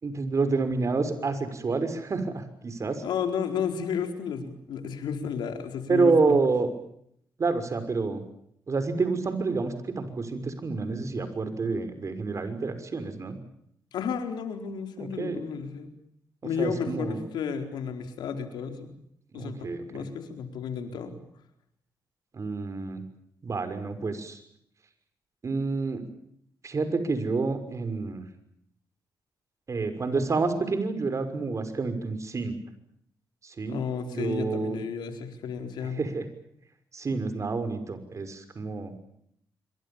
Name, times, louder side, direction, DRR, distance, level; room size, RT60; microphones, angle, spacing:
voice 1, 0.0-3.0 5.9-6.7 7.4-8.2 8.7-13.4 15.0-15.4 16.4-17.2 19.3-20.0 22.3-23.0 23.4-24.4 25.4-26.0 26.6-28.3 29.7-32.6 33.4-33.8 34.1-34.8 35.8-36.3 36.9-38.9, right 4 dB, 45° right, 10 dB, 6.1 m, -28 dB
voice 2, 3.0-6.4 13.9-15.9 16.4-18.9 19.3-21.2 33.7-36.0, left 7 dB, 85° left, 6 dB, 4.4 m, -32 dB
27.0 x 24.5 x 7.3 m, 0.71 s
cardioid pair, 75°, 7 cm